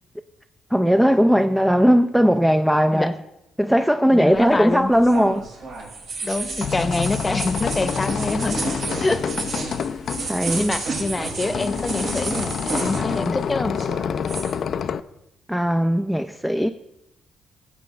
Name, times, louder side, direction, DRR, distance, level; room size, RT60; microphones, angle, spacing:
voice 1, 0.7-3.2 3.6-5.5 10.3-10.7 15.5-16.7, equal, 5° right, 0.4 m, -18 dB
voice 2, 4.1-4.9 6.2-8.7 9.0-9.3 10.6-13.8, left 2 dB, 20° left, 0.9 m, -25 dB
sound 1, 4.3-13.4 13.7-14.5, right 3 dB, 75° right, 5.1 m, -31 dB
sound 2, 6.3-15.0, left 7 dB, 60° left, 0.4 m, -28 dB
17.5 x 8.4 x 3.3 m
cardioid pair, 90°, 0 cm